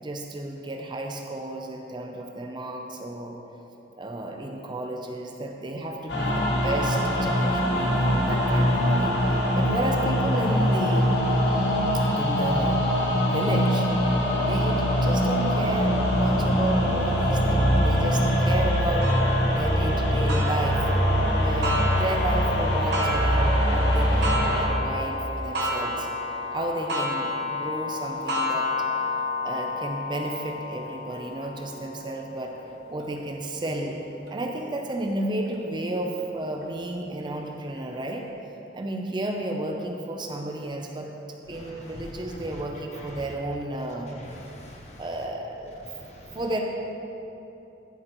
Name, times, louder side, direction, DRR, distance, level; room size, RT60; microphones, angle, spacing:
voice 1, 0.0-3.4 3.9-11.1 11.9-12.9 13.2-13.9 14.4-19.1 19.5-20.9 21.4-26.1 26.5-28.7 29.4-32.5 32.9-34.0 34.3-38.3 38.7-41.1 41.5-44.1 45.0-45.8 46.3-46.6, right 1 dB, 25° right, 2 dB, 0.5 m, -32 dB
sound 1, 6.1-24.6, equal, 75° left, 1.5 m, -23 dB
Clock, 19.0-34.3 34.9-35.0 35.5-35.6 36.6-36.7, left 2 dB, 70° right, 1.1 m, -31 dB
voice 2, 41.5-42.5 42.9-43.1 44.1-45.0 46.0-46.4, left 1 dB, 40° left, -2 dB, 1.2 m, -44 dB
11.0 x 8.0 x 3.0 m, 3.0 s
head